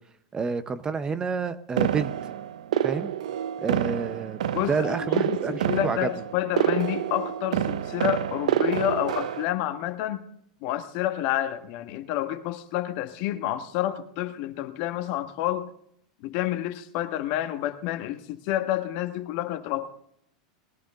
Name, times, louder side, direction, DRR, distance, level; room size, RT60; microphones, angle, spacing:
voice 1, 0.3-2.1 2.8-3.1 3.6-4.4 4.7-6.1, right 5 dB, 20° right, 13 dB, 0.7 m, -29 dB
sound 1, 1.8-9.4, right 10 dB, 80° right, 0.5 m, -28 dB
voice 2, 4.5-10.2 10.6-15.7 16.2-19.9, left 13 dB, 55° left, 8 dB, 1.3 m, -29 dB
20.0 x 11.5 x 3.7 m, 0.69 s
hypercardioid pair, 110°, 4 cm